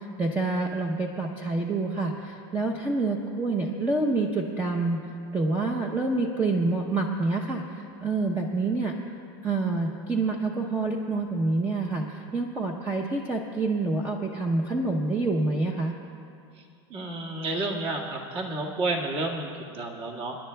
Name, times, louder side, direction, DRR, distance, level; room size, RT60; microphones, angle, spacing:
voice 1, 0.0-5.0 5.3-8.9 9.4-15.9, right 3 dB, 15° right, 1 dB, 0.7 m, -27 dB
voice 2, 16.9-20.4, right 2 dB, 40° right, 0 dB, 1.9 m, -31 dB
28.0 x 10.5 x 2.3 m, 2.4 s
supercardioid pair, 135°, 14 cm